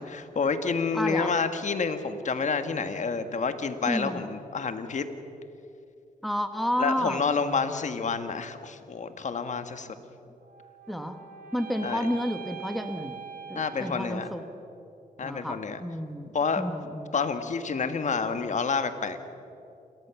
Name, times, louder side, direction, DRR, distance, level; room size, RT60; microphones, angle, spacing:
voice 1, 0.0-5.1 6.8-9.9 11.8-12.1 13.5-14.3 15.2-15.8 16.3-16.6 17.1-19.2, left 5 dB, 55° left, 9 dB, 1.6 m, -29 dB
voice 2, 0.9-1.3 3.8-4.2 6.2-7.2 10.9-11.2 11.5-13.2 13.5-14.4 15.2-16.3 16.6-17.1, equal, ahead, 7 dB, 1.3 m, -30 dB
sound 1, 10.4-14.7, right 6 dB, 80° right, 1.4 m, -43 dB
29.0 x 14.0 x 7.1 m, 2.7 s
cardioid pair, 85°, 15 cm